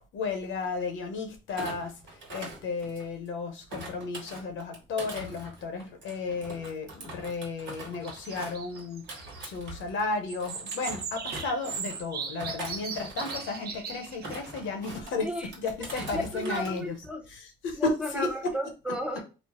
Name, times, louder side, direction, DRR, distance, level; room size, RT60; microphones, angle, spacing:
voice 1, 0.0-9.1 9.4-15.3 15.6-17.0 17.3-18.3, left 3 dB, 75° left, 0.8 m, -33 dB
Thump thud, 1.5-3.3 3.7-10.1 10.4-12.0 12.4-13.6 14.1-15.1 15.5-16.7 17.0-17.4, right 2 dB, 70° right, 1.3 m, -42 dB
sound 1, 8.0-9.4 10.3-14.5, right 5 dB, 50° right, 0.6 m, -38 dB
voice 2, 15.2-15.5 15.9-17.2 17.7-19.2, equal, 5° right, 0.5 m, -33 dB
3.1 x 2.0 x 2.9 m
cardioid pair, 90°, 20 cm